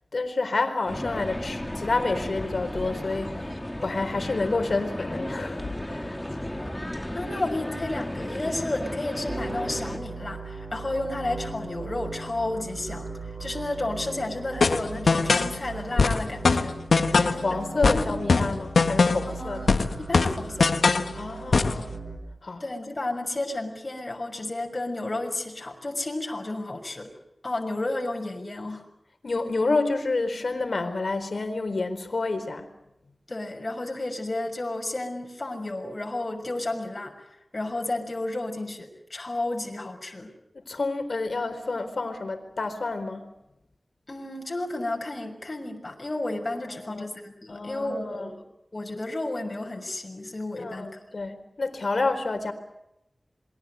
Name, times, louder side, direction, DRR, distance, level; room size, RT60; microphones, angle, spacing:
voice 1, 0.1-6.2 17.1-19.7 21.1-21.9 22.4-22.6 29.2-32.7 40.7-43.3 46.5-47.1 47.5-48.3 50.5-52.5, left 3 dB, 70° left, 7 dB, 4.3 m, -29 dB
sound 1, 0.9-10.0, left 1 dB, 10° left, 2.8 m, -34 dB
voice 2, 6.4-6.7 7.1-13.1 13.4-16.8 17.7-18.2 19.3-20.8 22.6-27.1 27.4-28.9 33.3-37.1 37.5-40.3 44.1-48.4 48.7-51.0, left 2 dB, 40° left, 1 dB, 6.2 m, -32 dB
sound 2, 9.3-22.2, right 3 dB, 50° right, 7.7 m, -38 dB
sound 3, 14.6-15.5 16.0-17.4 17.8-19.3 19.7-21.1 21.5-21.8, left 4 dB, 90° left, 1.4 m, -21 dB
28.0 x 23.0 x 8.1 m, 0.85 s
wide cardioid pair, 60°, 0 cm